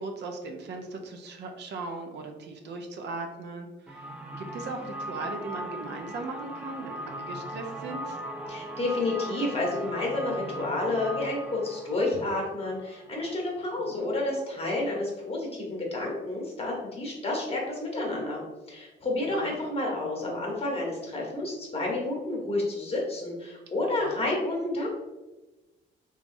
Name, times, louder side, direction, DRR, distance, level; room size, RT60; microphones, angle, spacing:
voice 1, 0.0-4.1 4.4-8.2 13.9-14.1 19.4-19.6 24.0-24.2, right 3 dB, 60° right, 4 dB, 0.4 m, -38 dB
sound 1, 3.9-13.6, right 1 dB, 5° right, 0.4 m, -39 dB
voice 2, 8.5-18.4 18.7-24.9, left 2 dB, 30° left, -2 dB, 1.0 m, -30 dB
3.0 x 2.3 x 2.6 m, 1.1 s
cardioid pair, 90°, 20 cm